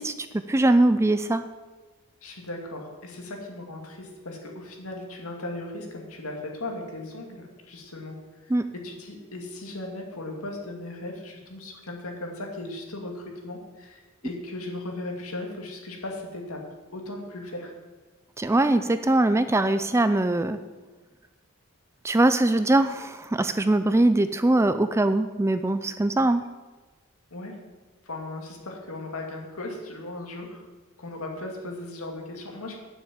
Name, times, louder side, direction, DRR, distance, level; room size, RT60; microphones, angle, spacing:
voice 1, 0.0-1.4 8.5-8.7 18.4-20.6 22.0-26.4, right 2 dB, 10° right, 10 dB, 0.3 m, -22 dB
voice 2, 2.2-8.1 8.4-8.5 8.8-16.6 16.9-17.7 27.3-27.6 28.0-30.7 31.0-32.8, left 2 dB, 80° left, 1 dB, 2.3 m, -37 dB
10.0 x 7.0 x 7.5 m, 1.3 s
head